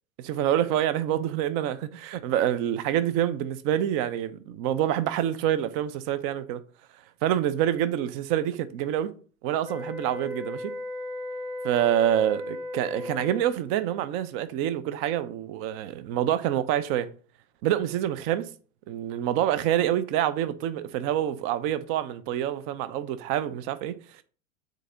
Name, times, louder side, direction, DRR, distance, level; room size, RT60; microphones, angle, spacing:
voice 1, 0.2-6.6 7.2-9.1 9.4-10.7 11.6-17.1 17.6-18.5 18.9-24.2, right 11 dB, 30° right, 0.6 m, -27 dB
sound 1, 9.6-13.5, left 2 dB, 65° right, 2.9 m, -36 dB
6.6 x 4.1 x 3.7 m
figure-of-eight pair, 90°, 42 cm